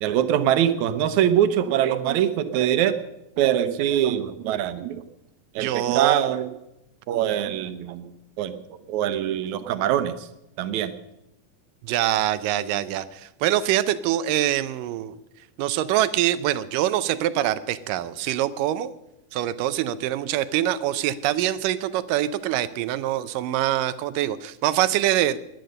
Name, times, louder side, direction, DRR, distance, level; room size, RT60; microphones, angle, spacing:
voice 1, 0.0-2.9 3.4-5.0 5.6-6.5 7.1-8.1 8.4-8.5 8.9-10.2 10.6-10.9, right 10 dB, 70° right, 11 dB, 2.2 m, -23 dB
voice 2, 5.6-6.3 11.8-15.2 15.6-18.9 19.3-25.4, right 13 dB, 90° right, 14 dB, 2.4 m, -24 dB
22.0 x 9.4 x 6.6 m, 0.89 s
omnidirectional pair, 3.7 m